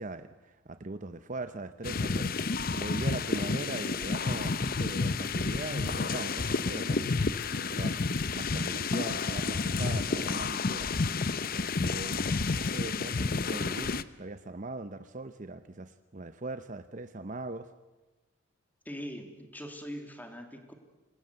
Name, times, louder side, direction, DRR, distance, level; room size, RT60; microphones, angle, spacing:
voice 1, 0.0-2.4 2.7-7.1 7.5-8.0 8.3-10.9 11.5-17.7, right 2 dB, 40° right, 11 dB, 0.7 m, -40 dB
sound 1, 1.8-14.0, left 4 dB, 45° left, 0.7 m, -30 dB
voice 2, 18.8-20.7, equal, 10° left, 5 dB, 2.6 m, -42 dB
26.5 x 19.5 x 8.0 m, 1.1 s
head